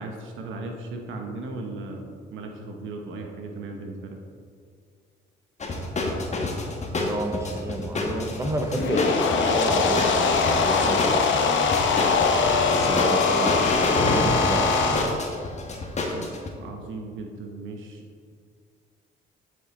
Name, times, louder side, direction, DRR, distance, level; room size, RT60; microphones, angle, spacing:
voice 1, 0.0-4.2 16.1-16.3 16.6-18.0, right 3 dB, 80° right, 2 dB, 1.1 m, -36 dB
sound 1, 5.6-16.5, left 2 dB, 35° left, 1.2 m, -28 dB
voice 2, 6.8-12.1 12.6-15.1, right 1 dB, 15° right, 4 dB, 0.8 m, -30 dB
sound 2, 8.6-15.1, left 4 dB, 70° left, 0.8 m, -22 dB
8.0 x 5.3 x 4.2 m, 2.1 s
cardioid pair, 90°, 20 cm